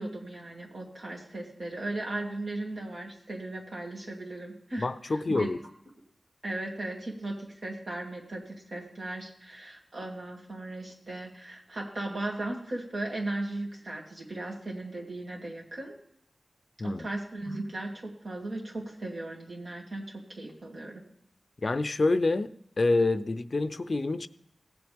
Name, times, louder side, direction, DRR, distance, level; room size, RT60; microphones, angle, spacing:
voice 1, 0.0-5.5 6.4-15.9 16.8-21.0, right 2 dB, 75° right, -1 dB, 2.6 m, -37 dB
voice 2, 4.8-5.6 16.8-17.1 21.6-22.5 22.8-24.3, left 3 dB, 55° left, 13 dB, 0.5 m, -27 dB
16.5 x 7.9 x 3.5 m, 0.75 s
wide cardioid pair, 55°, 0 cm